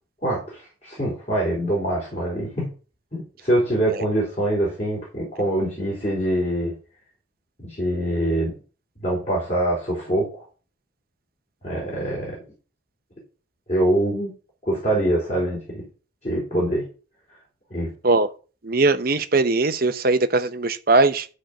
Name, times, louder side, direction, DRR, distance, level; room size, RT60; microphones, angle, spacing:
voice 1, 0.2-2.7 3.1-6.7 7.6-8.5 9.0-10.4 11.6-12.4 13.7-14.3 14.6-15.8 16.2-16.8 17.7-17.9, right 1 dB, 35° left, 4.2 m, -24 dB
voice 2, 18.6-21.3, right 3 dB, 50° right, 0.9 m, -20 dB
12.5 x 4.4 x 6.6 m
head